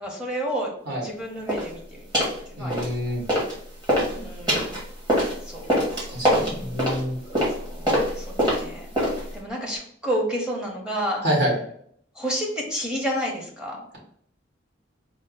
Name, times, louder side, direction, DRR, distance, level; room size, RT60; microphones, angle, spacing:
voice 1, 0.0-0.7 1.0-2.8 4.1-4.7 5.4-5.6 6.2-6.3 7.6-9.0 9.3-11.2 12.2-13.9, equal, 5° right, -2 dB, 0.8 m, -30 dB
sound 1, 1.5-1.7 2.1-2.4 2.7-3.5 3.8-9.4, equal, 25° right, 1.4 m, -24 dB
voice 2, 2.6-3.2 6.1-7.2 11.2-11.6, equal, 60° right, -3 dB, 1.6 m, -26 dB
4.5 x 2.0 x 3.8 m, 0.65 s
head